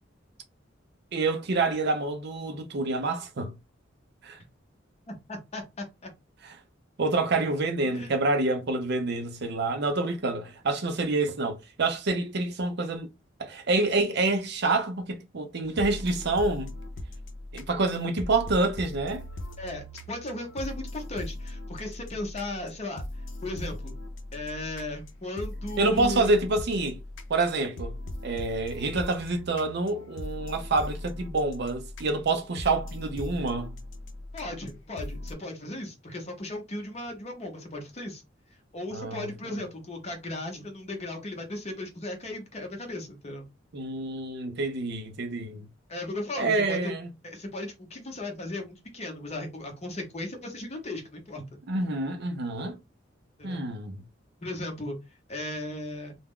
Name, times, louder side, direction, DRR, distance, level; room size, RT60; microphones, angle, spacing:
voice 1, 1.1-3.6 4.2-4.4 6.4-6.5 7.0-13.1 13.4-16.7 17.5-19.2 25.8-27.0 27.3-28.0 28.2-33.7 38.9-39.5 43.7-45.7 46.4-47.1 51.7-52.8 53.4-54.0, right 3 dB, 60° right, 0.6 m, -27 dB
voice 2, 5.1-6.1 7.8-8.1 19.6-23.0 23.4-23.9 24.3-26.3 34.3-38.2 38.7-43.4 45.9-47.0 47.2-51.4 53.4-53.6 54.4-55.0 55.3-56.2, left 1 dB, 35° left, 0.8 m, -36 dB
sound 1, 15.6-35.3, left 1 dB, 75° left, 0.5 m, -39 dB
2.3 x 2.0 x 3.6 m
head